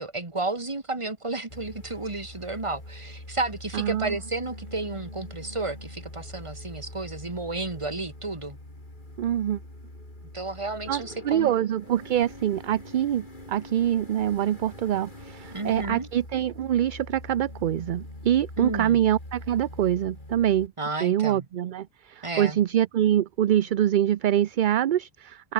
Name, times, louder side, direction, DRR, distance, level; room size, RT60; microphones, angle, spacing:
voice 1, 0.0-8.6 10.3-11.5 15.5-16.1 18.6-19.0 20.8-21.4 22.2-22.6, right 2 dB, 30° right, 1.9 m, -32 dB
sound 1, 1.5-20.7, left 1 dB, 50° left, 6.4 m, -43 dB
voice 2, 3.7-4.2 9.2-9.6 10.9-20.7 21.0-25.5, right 11 dB, 60° right, 0.6 m, -25 dB
open air
omnidirectional pair, 1.1 m